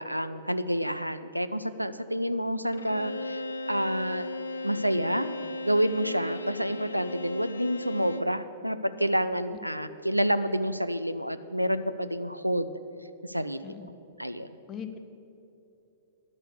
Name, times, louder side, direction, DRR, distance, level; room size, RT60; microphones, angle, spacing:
voice 1, 0.0-4.3 4.6-5.3 5.6-12.7 13.2-13.7 14.2-14.5, equal, 90° right, 12 dB, 0.4 m, -29 dB
Bowed string instrument, 2.7-8.4, left 2 dB, 75° left, 0.5 m, -36 dB
voice 2, 14.7-15.0, left 7 dB, 25° left, 9 dB, 0.7 m, -39 dB
11.0 x 6.4 x 8.2 m, 2.8 s
figure-of-eight pair, 105°, 0 cm